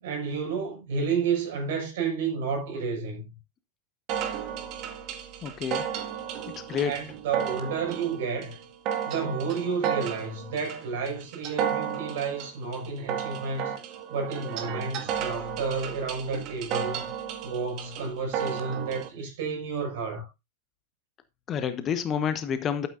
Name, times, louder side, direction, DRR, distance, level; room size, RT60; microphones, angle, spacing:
voice 1, 0.0-3.3 6.8-8.6 9.0-13.7 14.1-17.1 17.4-20.3, right 5 dB, 55° right, 6.2 m, -31 dB
sound 1, 4.1-19.1, right 9 dB, 40° right, 2.1 m, -33 dB
voice 2, 5.4-5.9 6.5-6.9 21.5-22.9, left 8 dB, 30° left, 1.1 m, -29 dB
12.0 x 9.0 x 2.6 m
figure-of-eight pair, 90°, 0 cm